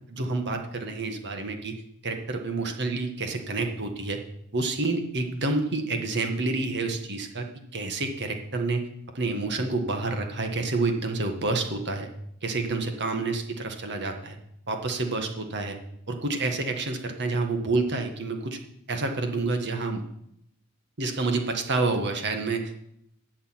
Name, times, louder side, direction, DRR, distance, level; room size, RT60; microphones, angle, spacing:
voice 1, 0.1-1.8 2.0-4.2 4.5-7.4 7.7-8.8 9.1-12.1 12.4-14.4 14.7-15.8 16.1-18.6 18.9-20.0 21.0-22.8, right 3 dB, 55° right, 5 dB, 1.7 m, -28 dB
13.0 x 5.5 x 9.1 m, 0.75 s
head